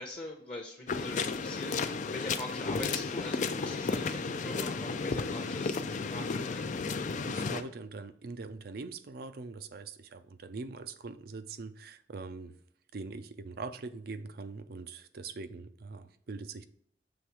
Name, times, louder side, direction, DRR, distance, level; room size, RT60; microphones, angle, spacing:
voice 1, 0.0-6.8, left 1 dB, 30° left, 0.8 m, -43 dB
sound 1, 0.9-7.6, left 4 dB, 45° left, 0.4 m, -33 dB
voice 2, 7.2-12.6 12.9-16.6, right 4 dB, 60° right, 0.5 m, -42 dB
7.1 x 3.4 x 4.7 m
head